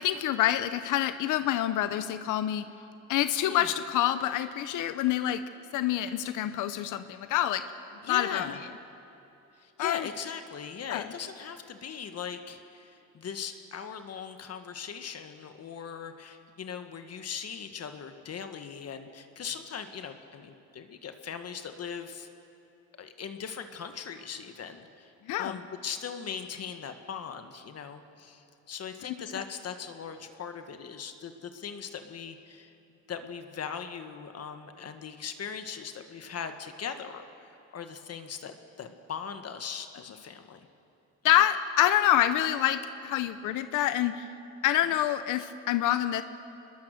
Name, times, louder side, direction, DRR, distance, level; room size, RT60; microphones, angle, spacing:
voice 1, 0.0-2.6 3.1-5.4 5.7-7.6 8.1-8.5 9.8-10.1 10.9-11.1 25.3-25.6 29.0-29.4 41.2-44.3 44.6-46.2, left 12 dB, 90° left, 11 dB, 0.8 m, -27 dB
voice 2, 8.0-8.6 9.5-22.3 23.0-32.7 33.1-40.7, left 7 dB, 55° left, 8 dB, 1.4 m, -40 dB
22.5 x 21.0 x 6.6 m, 2.9 s
cardioid pair, 90°, 30 cm